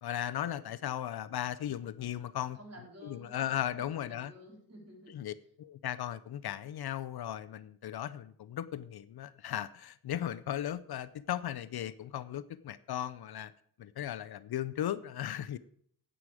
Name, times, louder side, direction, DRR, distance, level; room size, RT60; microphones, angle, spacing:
voice 1, 0.0-2.6 3.1-4.3 5.1-13.5 13.8-15.6, left 11 dB, 75° left, 0.6 m, -37 dB
voice 2, 2.5-5.2, equal, 40° right, 3.9 m, -52 dB
9.6 x 9.0 x 4.8 m
wide cardioid pair, 110°, 38 cm